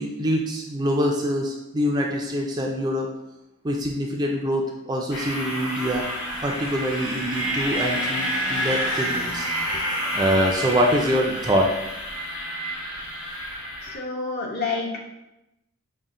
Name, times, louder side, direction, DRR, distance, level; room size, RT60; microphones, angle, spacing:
voice 1, 0.0-3.1 3.6-6.1 6.4-9.5 10.1-11.7, equal, 20° right, 1 dB, 0.3 m, -24 dB
sound 1, 5.1-14.0, equal, 65° left, 1.0 m, -29 dB
voice 2, 13.9-15.0, left 4 dB, 45° left, -1 dB, 0.7 m, -28 dB
5.3 x 2.1 x 3.6 m, 0.91 s
head